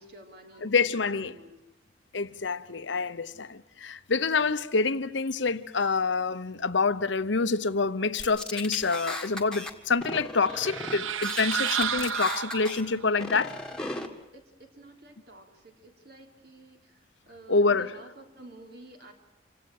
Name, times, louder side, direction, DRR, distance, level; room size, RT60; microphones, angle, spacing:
voice 1, 0.0-1.6 13.6-13.8 14.3-19.1, right 1 dB, 55° right, 3.5 m, -51 dB
voice 2, 0.6-1.4 2.1-13.6 17.5-17.9, left 4 dB, 70° left, 0.9 m, -27 dB
sound 1, 8.2-9.7 10.0-11.0 11.2-12.8 13.2-14.1, left 2 dB, 5° left, 1.9 m, -36 dB
sound 2, 10.4-13.1, right 7 dB, 90° right, 0.8 m, -31 dB
27.5 x 17.0 x 8.8 m
head